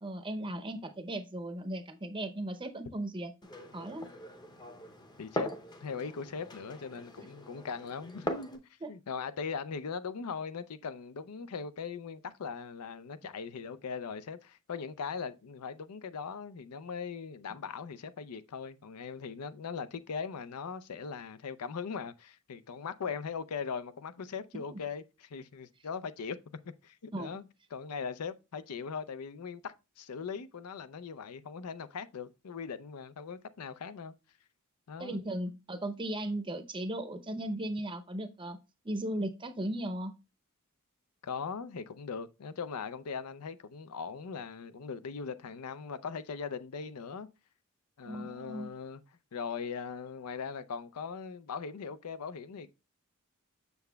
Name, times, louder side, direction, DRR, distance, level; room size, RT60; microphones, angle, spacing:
voice 1, 0.0-3.3 3.7-4.1 7.2-7.3 8.8-8.9 24.7-24.8 27.1-27.4 35.0-38.6 38.8-40.1 48.1-48.7, right 1 dB, 20° right, 0.6 m, -37 dB
Glass, 3.4-8.6, left 1 dB, 20° left, 0.7 m, -41 dB
voice 2, 5.2-5.5 5.8-8.6 8.9-26.4 26.8-27.4 27.7-34.1 34.9-35.2 41.2-47.3 48.0-49.0 49.3-52.7, left 5 dB, 85° left, 0.5 m, -40 dB
6.9 x 6.6 x 2.3 m
head